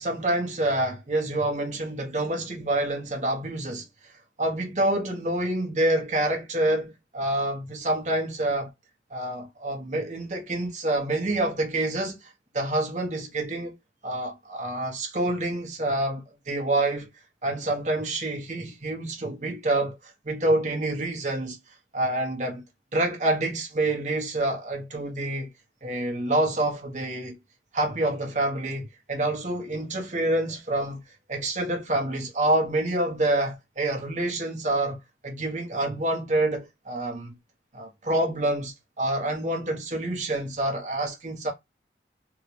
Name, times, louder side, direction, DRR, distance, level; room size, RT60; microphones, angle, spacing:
voice 1, 0.0-3.8 4.4-8.7 9.1-13.7 14.0-17.1 17.4-21.6 21.9-22.6 22.9-25.5 25.8-27.4 27.7-31.0 31.3-35.0 35.2-37.3 37.7-41.5, right 1 dB, 40° right, 1.1 m, -27 dB
3.6 x 2.4 x 3.2 m
head